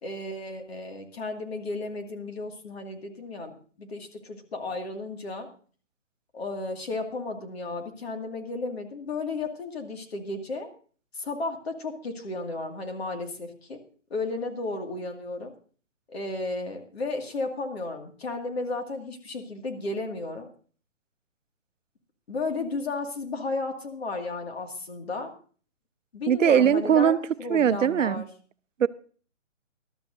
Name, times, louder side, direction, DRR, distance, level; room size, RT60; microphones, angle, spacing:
voice 1, 0.0-5.5 6.3-10.7 11.1-13.8 14.1-15.5 16.1-20.5 22.3-25.3 26.1-27.1 27.4-28.3, left 3 dB, 55° left, 2.1 m, -33 dB
voice 2, 26.3-27.2 27.5-28.2 28.8-28.9, right 8 dB, 80° right, 0.7 m, -20 dB
20.0 x 12.5 x 2.6 m
hypercardioid pair, 175°, 38 cm